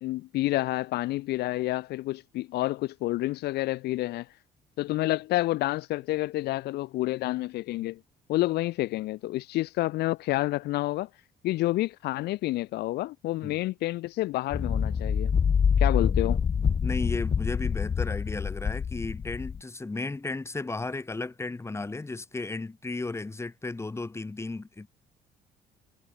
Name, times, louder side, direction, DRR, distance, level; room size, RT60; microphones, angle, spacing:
voice 1, 0.0-4.3 4.8-8.0 8.3-11.1 11.4-15.3 15.8-16.4, left 17 dB, 75° left, 0.7 m, -29 dB
sound 1, 14.5-19.6, left 6 dB, 30° left, 1.0 m, -26 dB
voice 2, 16.8-24.9, left 3 dB, 15° left, 2.4 m, -34 dB
cardioid pair, 110°, 17 cm